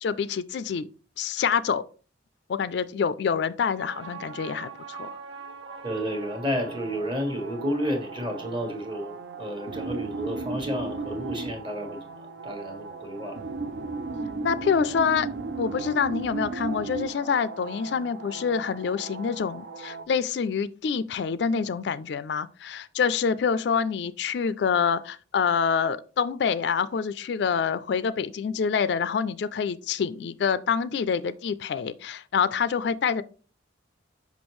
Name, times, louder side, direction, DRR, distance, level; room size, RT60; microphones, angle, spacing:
voice 1, 0.0-0.9 1.2-1.8 2.5-5.2 14.4-15.3 15.6-33.2, left 6 dB, 60° left, 0.3 m, -26 dB
sound 1, 3.8-20.1, right 4 dB, 65° right, 0.4 m, -36 dB
voice 2, 5.8-13.4, equal, 25° right, 1.2 m, -31 dB
6.2 x 5.4 x 3.1 m
head